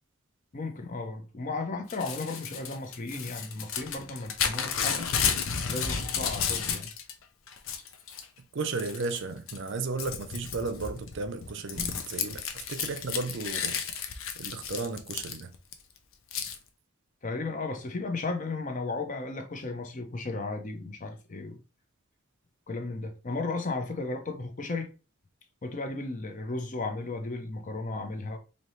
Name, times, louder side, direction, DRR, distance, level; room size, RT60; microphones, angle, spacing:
voice 1, 0.5-5.1 5.7-6.9 17.2-21.6 22.7-24.9 25.6-28.4, left 3 dB, 40° left, 0.7 m, -34 dB
Crumpling crinkling / Tearing, 1.9-7.1 7.5-8.3 8.8-9.2 9.5-15.7 16.3-16.6, left 7 dB, 75° left, 0.6 m, -32 dB
voice 2, 8.5-13.8 14.4-15.5, right 3 dB, 60° right, 0.6 m, -34 dB
4.4 x 2.7 x 3.2 m
head